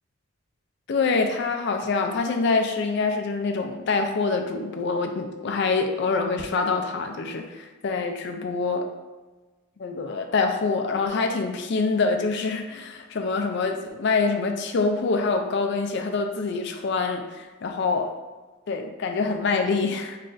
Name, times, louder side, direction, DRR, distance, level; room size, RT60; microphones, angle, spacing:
voice 1, 0.9-8.9 9.8-18.1 18.7-20.2, left 4 dB, 55° left, 5 dB, 0.4 m, -25 dB
3.2 x 2.5 x 3.8 m, 1.2 s
head